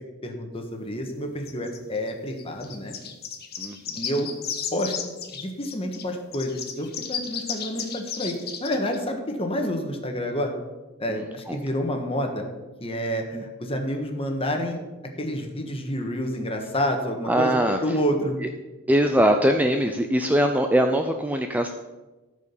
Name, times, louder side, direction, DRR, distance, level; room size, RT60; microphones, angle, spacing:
voice 1, 0.2-2.9 3.9-4.3 4.7-8.4 8.6-10.5 11.0-12.5 12.8-14.8 15.2-18.4, equal, 25° left, 3 dB, 1.4 m, -28 dB
sound 1, 1.4-6.0 6.3-9.0, left 8 dB, 45° left, 1.2 m, -34 dB
voice 2, 3.6-4.0 11.1-11.6 13.3-13.4 17.3-18.0 18.4-18.5 18.9-21.7, equal, 5° right, 5 dB, 0.4 m, -22 dB
13.5 x 5.1 x 7.0 m, 1.2 s
head